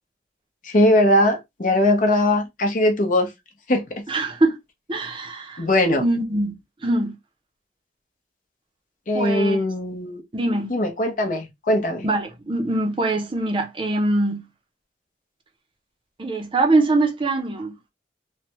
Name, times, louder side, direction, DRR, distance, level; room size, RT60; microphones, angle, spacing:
voice 1, 0.6-3.3 3.7-4.0 5.6-6.0 9.1-10.2 10.7-12.1, left 1 dB, 50° left, 0.8 m, -20 dB
voice 2, 4.1-4.6 4.9-5.6 6.0-6.6 6.8-7.1 9.1-9.6 10.3-10.7 12.0-14.5 16.2-17.7, right 2 dB, 30° right, 0.6 m, -23 dB
3.3 x 2.2 x 2.9 m
head